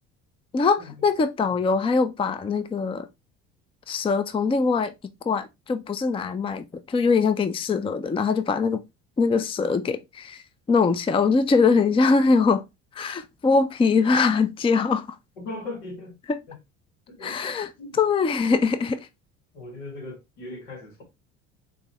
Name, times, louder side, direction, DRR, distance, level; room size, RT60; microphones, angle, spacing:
voice 1, 0.5-3.1 3.9-4.9 5.3-8.8 9.2-10.4 10.7-12.6 12.9-15.2 16.3-16.4 17.2-17.7 18.0-19.1, left 4 dB, 15° left, 0.5 m, -22 dB
voice 2, 15.4-16.2 16.5-16.6 17.1-18.0 19.5-21.0, left 2 dB, 80° left, 1.8 m, -39 dB
6.7 x 2.7 x 2.9 m
hypercardioid pair, 65°, 36 cm